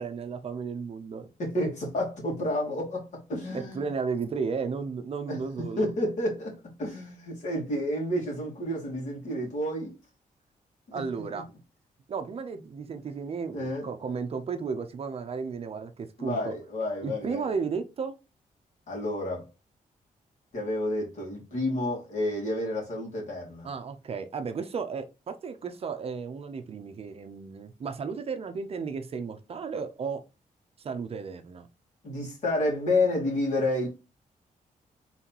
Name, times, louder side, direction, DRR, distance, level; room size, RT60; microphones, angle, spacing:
voice 1, 0.0-1.3 3.5-5.9 10.9-11.5 12.1-16.5 17.0-18.1 23.6-30.2 30.8-31.7, right 5 dB, 45° right, 0.6 m, -34 dB
voice 2, 1.4-3.8 5.3-5.4 5.8-10.0 10.9-11.0 11.3-11.4 13.5-13.9 16.2-17.5 18.9-19.4 20.5-23.7 32.0-33.9, left 1 dB, 55° left, 2.4 m, -30 dB
4.1 x 3.9 x 2.9 m
wide cardioid pair, 140°, 14 cm